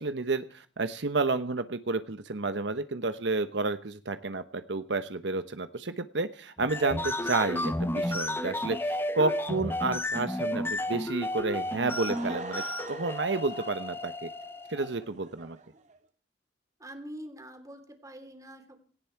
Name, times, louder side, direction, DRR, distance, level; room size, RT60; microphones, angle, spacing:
voice 1, 0.0-12.6 12.9-14.3 14.7-15.6, right 3 dB, 70° right, 11 dB, 1.0 m, -30 dB
sound 1, 6.6-14.8, left 1 dB, 10° left, 0.9 m, -32 dB
Laughter / Crowd, 11.5-16.0, right 3 dB, 40° right, 1.8 m, -44 dB
voice 2, 16.8-18.8, equal, 20° right, 7 dB, 3.0 m, -45 dB
18.0 x 17.0 x 4.6 m, 0.43 s
head